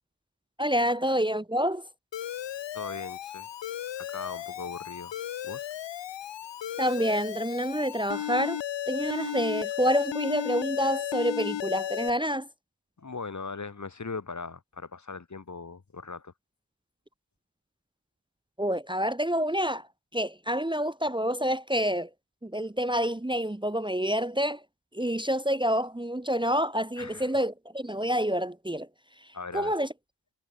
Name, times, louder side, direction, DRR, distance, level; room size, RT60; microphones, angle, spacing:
voice 1, 0.6-1.8 6.8-8.6 8.9-12.5 18.6-19.8 20.1-22.1 22.4-24.6 24.9-28.9 29.5-29.9, equal, 10° right, 1.3 m, -27 dB
Alarm, 2.1-12.1, left 11 dB, 70° left, 0.7 m, -35 dB
voice 2, 2.7-3.5 4.0-5.1 5.4-5.7 13.0-16.3 27.0-27.4 29.3-29.8, left 4 dB, 40° left, 1.7 m, -39 dB
cardioid pair, 60°, 45 cm